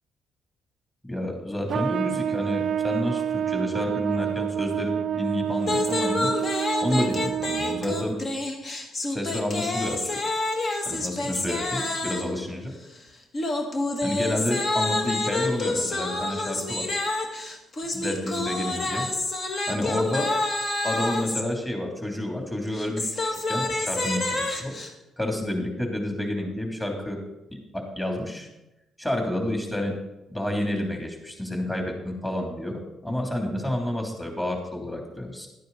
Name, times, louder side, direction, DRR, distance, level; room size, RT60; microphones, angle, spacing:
voice 1, 1.0-6.3 6.8-8.2 9.1-10.2 10.8-12.7 14.0-16.9 17.9-19.1 19.7-20.3 20.8-24.8 25.2-27.2 27.5-28.5 29.0-30.0 30.3-35.5, left 1 dB, 15° left, 1 dB, 3.0 m, -29 dB
Trumpet, 1.7-8.2, right 9 dB, 60° right, 0.3 m, -28 dB
sound 1, 5.6-12.4 13.3-21.4 22.7-24.9, left 2 dB, 50° left, 1.6 m, -28 dB
12.0 x 9.2 x 4.1 m, 0.94 s
cardioid pair, 90°, 0 cm